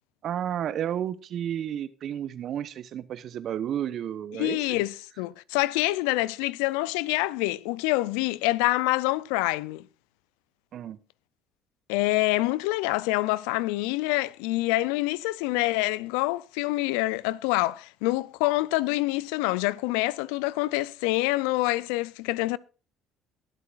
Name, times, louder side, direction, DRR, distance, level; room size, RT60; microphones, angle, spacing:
voice 1, 0.2-4.6 10.7-11.0, right 10 dB, 55° right, 1.0 m, -32 dB
voice 2, 4.3-9.8 11.9-22.6, left 19 dB, 75° left, 0.4 m, -26 dB
22.5 x 8.2 x 2.5 m
hypercardioid pair, 60°, 0 cm